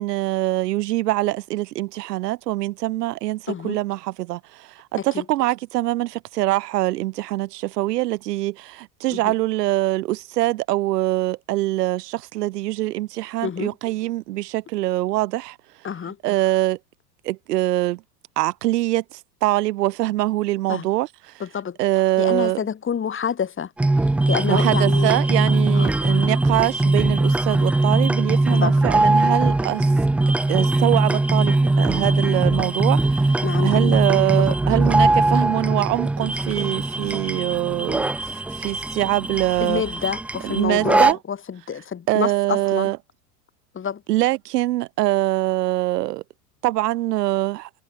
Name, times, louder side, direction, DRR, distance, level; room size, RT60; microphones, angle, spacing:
voice 1, 0.0-15.6 16.2-16.8 17.2-18.0 18.4-21.4 21.8-22.6 24.5-29.9 30.5-39.8 40.4-41.2 42.1-43.0 44.1-46.2 46.6-47.7, right 17 dB, 70° right, 6.7 m, -24 dB
voice 2, 3.5-3.8 5.0-5.2 9.1-9.3 13.4-13.7 15.8-16.2 20.7-20.9 21.4-21.8 22.2-25.2 25.7-25.9 28.5-28.7 33.4-34.0 34.3-34.6 39.6-42.9 43.7-44.0, left 7 dB, 25° left, 5.4 m, -28 dB
sound 1, 23.8-41.1, right 2 dB, 5° right, 0.4 m, -20 dB
hypercardioid pair, 105°, 49 cm